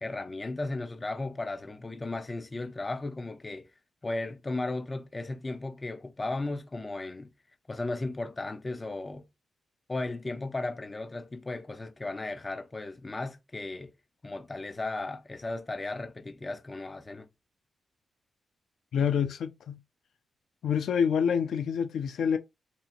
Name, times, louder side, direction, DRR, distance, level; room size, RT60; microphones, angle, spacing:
voice 1, 0.0-3.7 4.0-7.3 7.7-9.3 9.9-13.9 14.2-17.3, left 2 dB, 25° left, 0.6 m, -35 dB
voice 2, 18.9-19.8 20.6-22.4, left 7 dB, 85° left, 0.4 m, -27 dB
4.2 x 2.8 x 2.5 m
cardioid pair, 105°, 0 cm